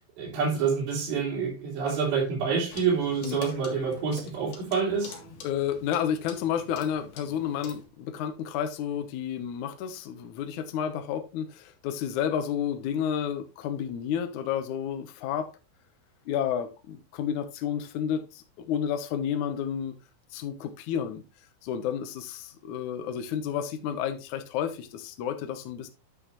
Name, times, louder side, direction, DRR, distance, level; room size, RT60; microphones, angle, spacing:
voice 1, 0.2-5.2, right 6 dB, 80° right, 5.3 m, -27 dB
Clock, 2.7-7.9, left 4 dB, 60° left, 3.6 m, -45 dB
voice 2, 5.4-15.5 16.3-19.9 20.3-21.2 21.6-25.9, left 9 dB, 80° left, 1.7 m, -31 dB
10.5 x 6.4 x 3.1 m
omnidirectional pair, 5.0 m